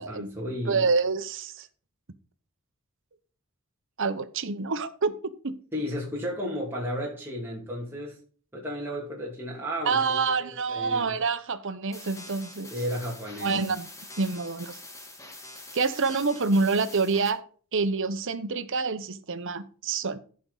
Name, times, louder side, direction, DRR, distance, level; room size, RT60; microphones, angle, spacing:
voice 1, 0.0-0.9 5.7-8.2 8.5-11.1 12.7-13.6, equal, 10° right, 2.5 m, -33 dB
voice 2, 0.7-1.7 4.0-5.1 5.4-5.6 9.8-12.7 13.4-13.9 14.2-14.8 15.7-17.4 17.7-20.2, right 4 dB, 60° right, 1.0 m, -27 dB
sound 1, 11.9-17.3, left 2 dB, 15° left, 1.9 m, -45 dB
15.0 x 5.3 x 4.1 m
head